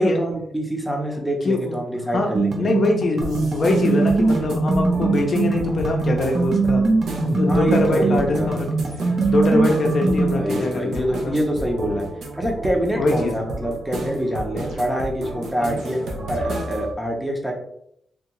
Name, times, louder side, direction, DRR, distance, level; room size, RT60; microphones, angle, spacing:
voice 1, 0.0-2.7 7.5-8.5 10.1-12.0 12.4-16.0 16.3-17.5, equal, ahead, 1 dB, 0.7 m, -25 dB
voice 2, 2.1-6.8 7.2-8.7 9.3-11.3 13.0-13.3 15.6-15.7, left 2 dB, 50° left, 2 dB, 0.6 m, -22 dB
sound 1, 2.3-10.3, right 3 dB, 45° right, 0.8 m, -22 dB
sound 2, 3.2-16.9, right 1 dB, 85° right, 0.6 m, -32 dB
3.5 x 2.4 x 3.0 m, 0.71 s
cardioid pair, 110°, 0 cm